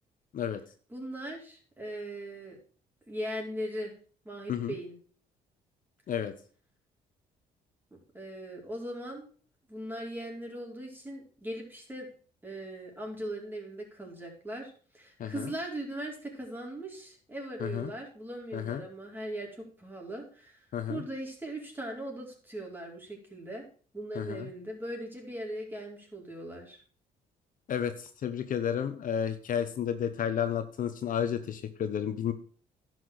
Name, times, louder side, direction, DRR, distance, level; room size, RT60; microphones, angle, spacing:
voice 1, 0.9-2.6 3.1-3.9 4.2-5.0 8.1-9.3 9.7-12.1 12.4-20.6 20.9-23.6 23.9-26.8, right 1 dB, 10° right, 0 dB, 4.8 m, -39 dB
voice 2, 15.2-15.5 17.6-17.9 18.5-18.8 20.7-21.0 24.1-24.5 27.7-32.3, left 8 dB, 55° left, 9 dB, 1.1 m, -32 dB
11.0 x 6.2 x 6.6 m, 0.42 s
supercardioid pair, 75°, 16 cm